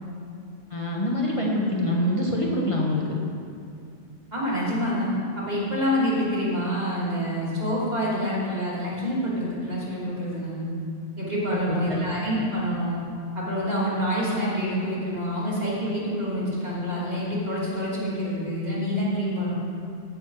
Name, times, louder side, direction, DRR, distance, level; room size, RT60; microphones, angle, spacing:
voice 1, 0.7-3.0 11.5-12.0, left 1 dB, 30° left, -3 dB, 1.3 m, -25 dB
voice 2, 4.3-5.1 5.4-10.7 11.2-13.0 13.3-19.5, equal, 40° right, -7 dB, 3.0 m, -27 dB
15.0 x 7.1 x 4.8 m, 2.4 s
omnidirectional pair, 1.1 m